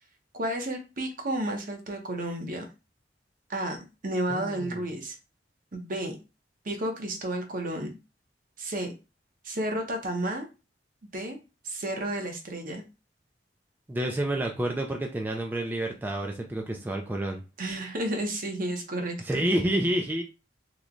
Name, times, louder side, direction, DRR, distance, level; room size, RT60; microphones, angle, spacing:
voice 1, 0.3-2.6 3.5-3.8 4.0-5.1 5.7-6.2 6.6-7.9 8.6-8.9 9.4-10.5 11.1-11.4 11.6-12.8 17.6-19.5, right 1 dB, 50° right, 3 dB, 0.8 m, -31 dB
voice 2, 4.3-4.8 13.9-17.4 19.2-20.2, right 1 dB, 10° right, 2 dB, 0.3 m, -29 dB
3.0 x 2.1 x 3.7 m, 0.29 s
head